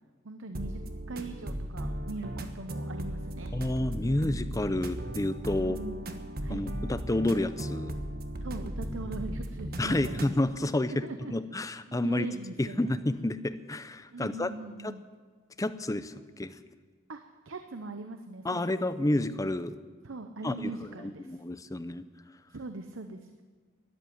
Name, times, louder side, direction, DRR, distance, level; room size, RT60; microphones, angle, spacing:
voice 1, 0.2-0.8 1.1-3.5 5.5-6.1 6.4-6.7 8.4-10.2 10.9-11.3 11.9-12.9 14.1-15.0 17.1-19.0 20.0-21.4 22.5-23.4, right 3 dB, 75° right, 7 dB, 0.8 m, -41 dB
sound 1, 0.5-10.3, right 1 dB, 50° right, 1.2 m, -36 dB
voice 2, 3.5-5.8 6.5-8.0 9.8-11.1 11.3-12.3 12.6-14.5 14.8-14.9 15.6-16.6 18.4-19.8 20.4-20.7 21.0-22.0, left 1 dB, 15° left, 12 dB, 0.6 m, -30 dB
13.0 x 10.5 x 9.5 m, 1.5 s
head